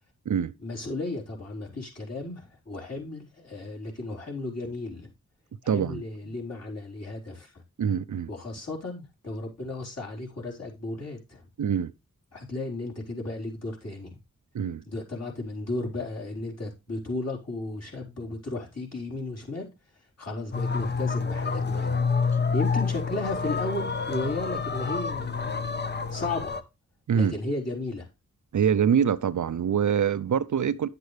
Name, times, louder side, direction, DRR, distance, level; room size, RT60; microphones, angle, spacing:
voice 1, 0.6-5.1 5.6-7.6 8.3-11.4 12.3-14.2 14.9-22.0 22.5-25.6 26.1-26.6 27.1-28.1, left 2 dB, 50° left, 4.3 m, -34 dB
voice 2, 5.7-6.0 7.8-8.3 11.6-11.9 14.5-14.8 22.3-22.4 27.1-27.4 28.5-30.9, right 8 dB, 65° right, 0.6 m, -25 dB
sound 1, 20.5-26.6, left 5 dB, 30° left, 0.9 m, -28 dB
10.0 x 8.0 x 3.3 m
wide cardioid pair, 90°, 33 cm